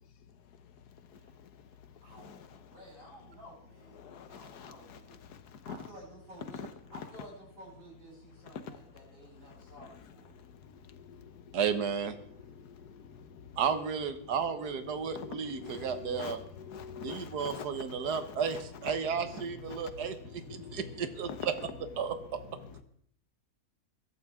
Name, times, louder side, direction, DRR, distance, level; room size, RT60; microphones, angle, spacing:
voice 1, 2.0-5.2 5.6-10.4, right 1 dB, 65° right, 8.4 m, -52 dB
voice 2, 4.0-5.7 6.6-6.7 10.3-11.6 12.4-13.6 14.9-18.5 19.3-20.9 21.3-21.5 22.6-22.8, left 7 dB, 85° left, 1.6 m, -45 dB
voice 3, 11.5-12.2 13.6-16.4 17.0-21.5 22.0-22.4, right 6 dB, 85° right, 1.6 m, -33 dB
22.0 x 12.0 x 3.6 m
omnidirectional pair, 1.7 m